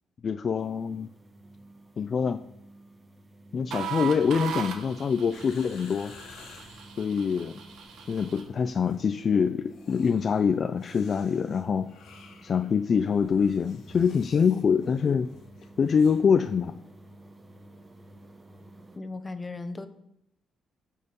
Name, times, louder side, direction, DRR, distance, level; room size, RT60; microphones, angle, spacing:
voice 1, 0.2-1.1 2.0-2.4 3.5-6.1 7.0-7.6 8.1-11.9 12.4-15.3 15.8-16.8, left 6 dB, 45° left, 9 dB, 0.5 m, -25 dB
sound 1, 0.6-19.0, right 1 dB, 25° right, 1.7 m, -52 dB
sound 2, 3.7-8.5, right 9 dB, 75° right, 1.6 m, -38 dB
sound 3, 5.3-6.9 7.7-8.4 8.6-9.0 9.6-16.3 16.5-16.6, left 5 dB, 80° left, 1.9 m, -53 dB
voice 2, 18.9-19.9, left 3 dB, 25° left, 9 dB, 1.2 m, -36 dB
15.5 x 6.5 x 5.4 m, 0.82 s
cardioid pair, 90°, 0 cm